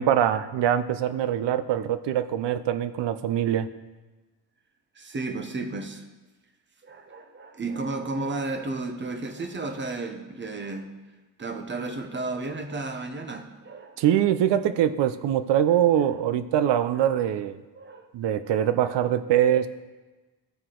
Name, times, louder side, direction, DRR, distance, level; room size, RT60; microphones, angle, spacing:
voice 1, 0.0-3.7 14.0-17.6 18.1-19.7, right 10 dB, 80° right, 13 dB, 0.6 m, -23 dB
voice 2, 5.0-6.0 6.8-10.9 11.4-14.2 14.7-14.8 16.1-16.2 16.9-17.3 17.7-18.1 18.4-18.7, right 3 dB, 25° right, 7 dB, 0.7 m, -33 dB
12.5 x 4.7 x 3.8 m, 1.2 s
cardioid pair, 120°, 42 cm